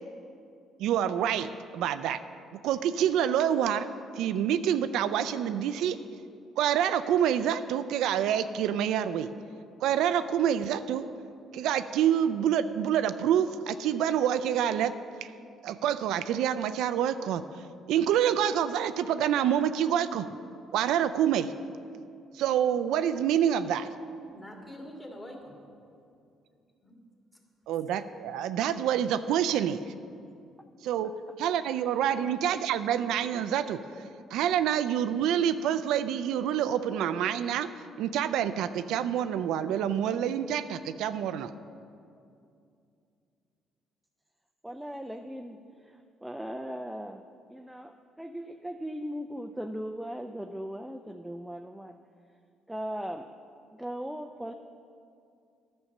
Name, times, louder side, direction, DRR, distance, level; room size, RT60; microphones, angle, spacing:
voice 1, 0.8-2.2 2.6-3.9 4.2-6.0 6.6-9.3 9.8-11.1 11.5-14.9 15.2-15.3 15.6-17.4 17.9-20.3 20.7-21.5 22.3-23.9 27.7-29.8 30.8-33.8 34.3-37.7 38.0-41.5, right 9 dB, 80° right, 11 dB, 0.4 m, -27 dB
voice 2, 24.3-25.5 26.8-26.9, equal, 20° left, 0 dB, 2.1 m, -44 dB
voice 3, 31.0-31.4 32.1-32.4 44.6-52.0 52.7-53.3 53.7-54.5, equal, 5° right, 5 dB, 0.4 m, -39 dB
11.0 x 5.4 x 7.1 m, 2.5 s
cardioid pair, 85°, 0 cm